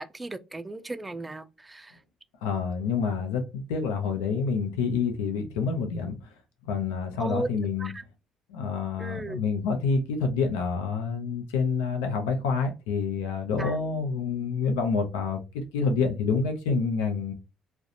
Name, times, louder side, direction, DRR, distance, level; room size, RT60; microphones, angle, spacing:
voice 1, 0.0-2.0 7.2-8.0 9.0-9.4 13.6-13.8, right 2 dB, 20° right, 0.3 m, -36 dB
voice 2, 2.4-6.1 6.7-7.9 8.5-17.3, left 5 dB, 85° left, 0.5 m, -28 dB
2.4 x 2.2 x 2.7 m
hypercardioid pair, 60°, 0 cm